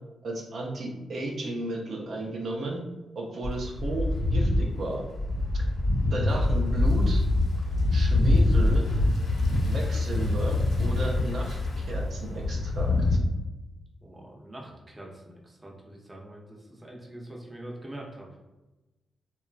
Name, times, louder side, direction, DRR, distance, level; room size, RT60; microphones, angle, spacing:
voice 1, 0.2-2.8 3.2-5.1 6.1-7.2 7.9-8.9 9.6-13.2, right 2 dB, 65° right, -1 dB, 0.5 m, -34 dB
sound 1, 3.4-13.2, left 2 dB, 65° left, 0.8 m, -25 dB
voice 2, 14.0-18.3, right 1 dB, 20° right, -2 dB, 0.7 m, -44 dB
2.9 x 2.2 x 2.4 m, 1.1 s
cardioid pair, 65°, 0 cm